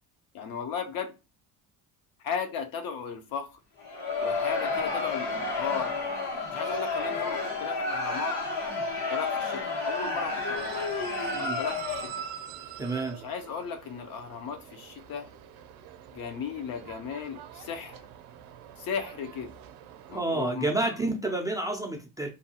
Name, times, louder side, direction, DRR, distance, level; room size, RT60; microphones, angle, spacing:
voice 1, 0.3-1.1 2.2-3.5 4.2-5.9 6.5-8.4 9.1-10.9 11.4-12.2 13.2-15.3 16.1-18.0 18.8-19.5 20.1-21.0, left 6 dB, 65° left, 0.7 m, -36 dB
Crowd, 3.8-12.3, left 3 dB, 85° left, 1.3 m, -31 dB
sound 1, 10.6-20.2, right 9 dB, 65° right, 0.5 m, -45 dB
voice 2, 12.8-13.2 20.1-22.3, right 2 dB, 10° right, 0.3 m, -29 dB
2.6 x 2.2 x 2.8 m
cardioid pair, 120°, 38 cm